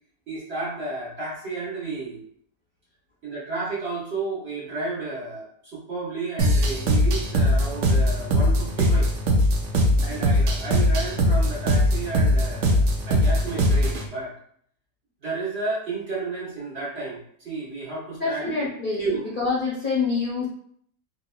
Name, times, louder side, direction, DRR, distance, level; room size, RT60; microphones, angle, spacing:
voice 1, 0.3-2.2 3.2-9.1 10.0-14.3 15.2-18.4 19.0-19.2, right 3 dB, 40° right, -7 dB, 1.3 m, -32 dB
sound 1, 6.4-14.1, equal, 65° right, 0.7 m, -21 dB
voice 2, 18.2-20.5, left 4 dB, 40° left, -8 dB, 0.8 m, -26 dB
3.9 x 2.9 x 2.2 m, 0.63 s
omnidirectional pair, 1.8 m